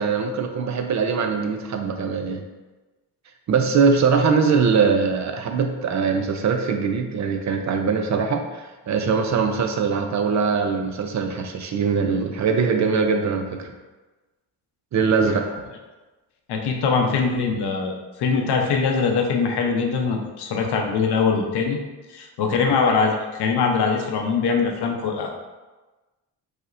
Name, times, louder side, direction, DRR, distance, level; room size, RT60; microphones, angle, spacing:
voice 1, 0.0-2.4 3.5-13.7 14.9-15.4, right 5 dB, 45° right, 4 dB, 0.4 m, -22 dB
voice 2, 16.5-21.8 22.1-25.3, left 5 dB, 70° left, 2 dB, 0.7 m, -22 dB
5.0 x 2.1 x 2.5 m, 1.2 s
cardioid pair, 70°, 42 cm